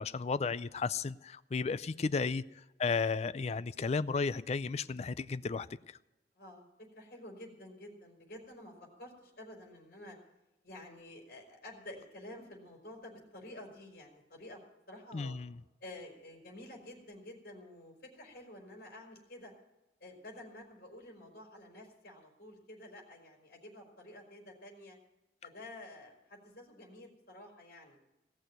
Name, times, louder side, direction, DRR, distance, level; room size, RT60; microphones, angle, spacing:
voice 1, 0.0-2.4 2.8-5.7 15.1-15.5, left 4 dB, 35° left, 16 dB, 0.4 m, -33 dB
voice 2, 6.3-10.2 10.6-15.4 15.8-19.5 20.0-25.0 25.4-28.0, left 1 dB, 55° left, 2 dB, 4.2 m, -50 dB
17.5 x 6.5 x 9.1 m, 0.99 s
head